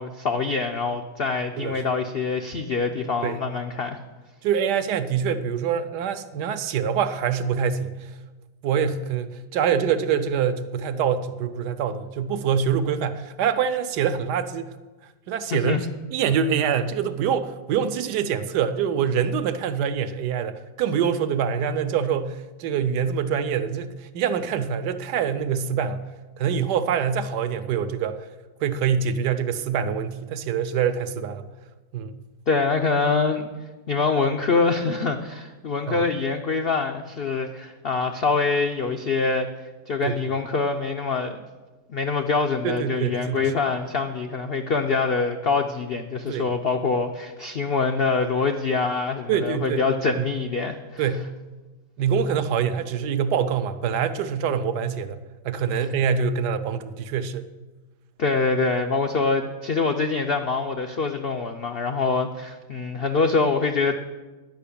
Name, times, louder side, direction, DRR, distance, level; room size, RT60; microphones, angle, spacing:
voice 1, 0.0-4.0 15.5-15.9 32.5-33.5 33.9-39.5 39.9-41.4 41.9-51.0 58.2-64.0, left 4 dB, 75° left, 5 dB, 0.5 m, -24 dB
voice 2, 4.4-8.1 8.6-14.7 15.3-15.9 16.1-26.0 26.4-28.2 28.6-31.4 31.9-32.2 35.9-36.0 40.0-40.2 42.6-43.5 46.3-46.5 49.3-49.8 50.2-50.3 51.0-51.3 52.0-55.2 55.4-57.5, right 7 dB, 80° right, 10 dB, 1.2 m, -25 dB
10.5 x 5.8 x 8.4 m, 1.2 s
omnidirectional pair, 1.8 m